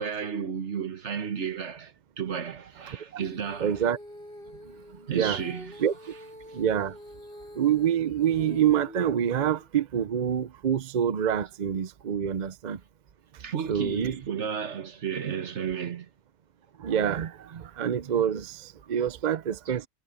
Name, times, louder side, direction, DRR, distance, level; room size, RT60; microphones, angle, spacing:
voice 1, 0.0-3.9 5.1-6.6 9.4-9.5 13.4-16.1 19.6-19.8, right 7 dB, 65° right, 1.5 m, -33 dB
voice 2, 2.9-3.2 3.6-4.0 5.1-5.4 5.8-5.9 6.5-6.9 7.6-12.8 13.7-14.2 16.8-19.9, right 9 dB, 50° right, 0.6 m, -26 dB
Female singing, 3.2-9.7, left 1 dB, 45° left, 7.3 m, -46 dB
omnidirectional pair, 1.3 m